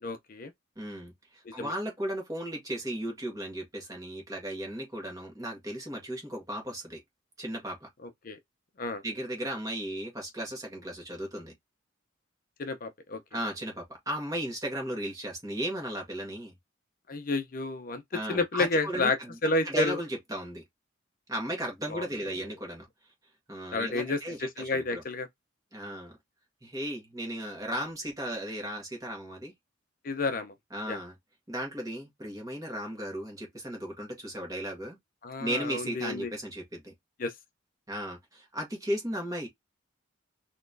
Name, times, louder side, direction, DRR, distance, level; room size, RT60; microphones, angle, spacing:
voice 1, 0.0-0.5 1.5-1.7 8.0-8.4 8.8-9.0 12.6-13.2 17.1-18.0 18.3-19.2 19.4-20.0 21.9-22.1 23.7-25.3 30.0-30.5 30.9-31.0 35.2-36.3 37.2-37.3, left 3 dB, 45° left, 0.6 m, -30 dB
voice 2, 0.8-7.0 7.4-7.9 9.0-11.5 13.3-16.5 18.1-19.3 19.6-20.6 21.3-22.8 23.5-25.0 25.7-26.1 26.6-29.5 30.7-31.1 31.5-35.0 35.4-36.9 37.9-39.5, right 1 dB, 20° right, 1.6 m, -35 dB
4.2 x 3.0 x 2.6 m
head